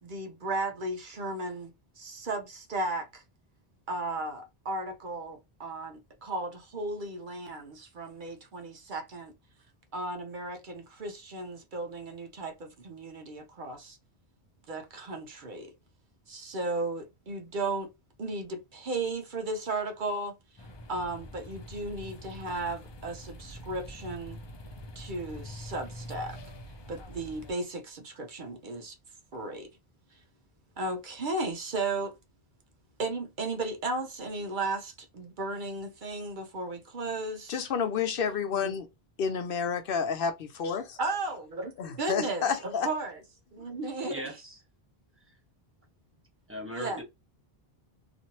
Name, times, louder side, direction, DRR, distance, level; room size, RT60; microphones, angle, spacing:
voice 1, 0.0-3.2 3.9-9.3 9.9-14.0 14.7-15.7 16.3-17.9 18.2-20.4 20.9-24.4 25.0-26.4 26.9-29.0 29.3-29.7 30.8-32.1 33.0-37.6 38.5-38.7 41.0-41.7 42.0-43.1 43.5-44.2 46.7-47.0, right 2 dB, 60° right, 0.7 m, -35 dB
sound 1, 20.6-27.5, equal, 45° left, 0.3 m, -45 dB
voice 2, 37.5-38.9 39.2-41.0 41.8-42.9 43.6-43.7, left 6 dB, 65° left, 0.7 m, -30 dB
voice 3, 44.0-44.6 45.2-45.4 46.5-47.0, right 1 dB, 15° right, 0.9 m, -40 dB
3.0 x 2.5 x 2.7 m
omnidirectional pair, 1.0 m